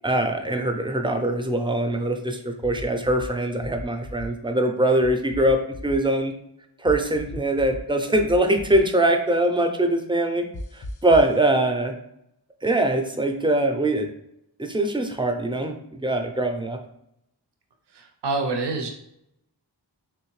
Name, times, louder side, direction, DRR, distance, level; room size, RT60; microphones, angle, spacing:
voice 1, 0.0-5.6 5.8-6.3 6.8-10.4 10.7-11.9 12.6-14.1 14.6-16.8, right 1 dB, 10° right, 5 dB, 0.5 m, -22 dB
sound 1, 2.6-3.3 3.6-4.3 5.0-6.0 6.9-7.8 8.1-8.8 10.5-11.3, left 1 dB, 50° left, 0.5 m, -36 dB
voice 2, 18.0-18.9, right 3 dB, 70° right, 4 dB, 0.6 m, -27 dB
3.5 x 3.1 x 3.1 m, 0.77 s
wide cardioid pair, 50°, 42 cm